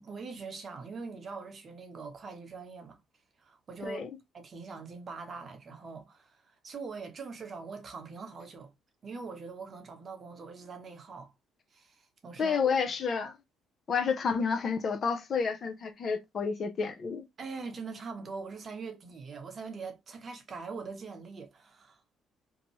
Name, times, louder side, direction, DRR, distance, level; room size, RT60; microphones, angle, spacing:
voice 1, 0.0-3.0 3.4-4.0 4.3-8.7 9.0-11.3 11.7-12.9 17.4-22.0, right 4 dB, 45° right, 0.8 m, -43 dB
voice 2, 12.4-13.3 13.9-17.2, left 5 dB, 50° left, 0.6 m, -30 dB
2.7 x 2.2 x 2.9 m
supercardioid pair, 60°, 0 cm